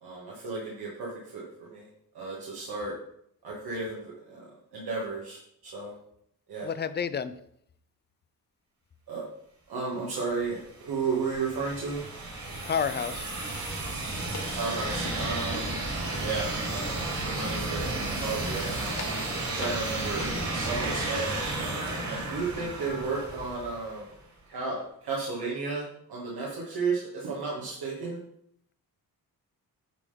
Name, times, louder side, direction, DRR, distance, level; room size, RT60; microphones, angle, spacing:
voice 1, 0.0-1.4 1.7-1.9 2.1-2.9 3.4-4.4 4.7-5.4 5.7-5.9 6.5-6.7 9.1-9.2 9.7-12.0 14.6-15.7 16.2-17.9 18.1-19.0 19.5-21.3 21.6-24.1 24.5-28.2, right 4 dB, 80° right, -5 dB, 2.0 m, -33 dB
voice 2, 6.6-7.3 12.7-13.3, left 7 dB, 30° left, 14 dB, 0.4 m, -30 dB
sound 1, 10.4-24.1, right 2 dB, 50° right, 2.9 m, -33 dB
sound 2, 13.8-21.3, left 4 dB, 50° left, 1.5 m, -46 dB
9.1 x 4.0 x 5.1 m, 0.70 s
wide cardioid pair, 135°, 37 cm